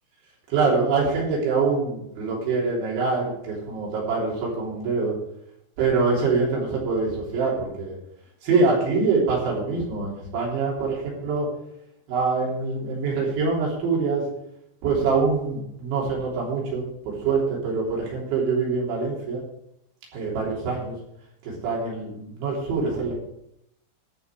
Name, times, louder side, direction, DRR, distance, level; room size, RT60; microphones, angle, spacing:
voice 1, 0.5-5.1 5.8-8.0 8.4-11.5 12.1-14.2 14.8-19.4 20.1-21.0 21.4-23.1, right 4 dB, 80° right, -4 dB, 5.7 m, -24 dB
14.0 x 5.6 x 7.0 m, 0.78 s
omnidirectional pair, 5.2 m